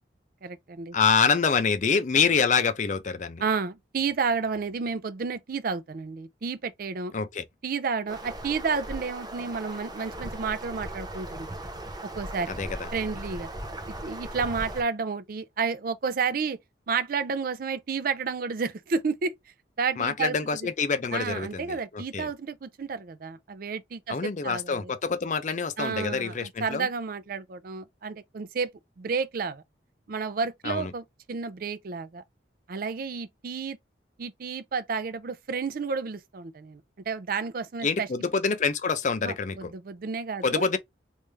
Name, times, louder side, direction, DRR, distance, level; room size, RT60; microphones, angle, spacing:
voice 1, 0.4-1.0 3.4-7.1 7.6-11.5 12.2-12.5 12.9-13.5 14.0-16.6 16.9-19.3 19.8-20.4 21.1-24.9 25.8-28.7 29.0-29.6 30.1-32.2 32.7-33.8 34.2-36.8 37.1-38.1 39.2-40.7, right 5 dB, 55° right, 0.4 m, -31 dB
voice 2, 0.9-3.4 7.1-7.5 12.5-12.9 20.0-22.3 24.1-26.9 30.6-30.9 37.8-39.7 40.4-40.8, left 5 dB, 45° left, 0.5 m, -26 dB
sound 1, 8.1-14.8, right 1 dB, 25° right, 0.8 m, -38 dB
3.3 x 2.6 x 3.2 m
head